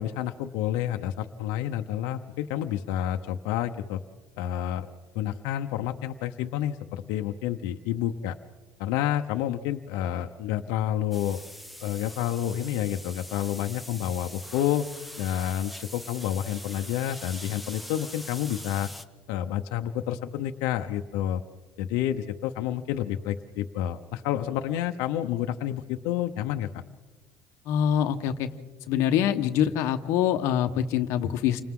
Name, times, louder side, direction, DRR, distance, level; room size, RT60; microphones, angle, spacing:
voice 1, 0.0-4.0 4.4-4.9 5.1-8.3 8.8-11.4 11.8-14.9 15.2-18.9 19.3-21.4 21.8-26.8, left 11 dB, 80° left, 6 dB, 0.8 m, -29 dB
sound 1, 11.1-19.0, equal, ahead, 0.7 m, -43 dB
voice 2, 27.6-28.5 28.9-31.6, left 10 dB, 60° left, 6 dB, 1.1 m, -24 dB
29.5 x 25.5 x 3.8 m, 1.3 s
cardioid pair, 175°, 6 cm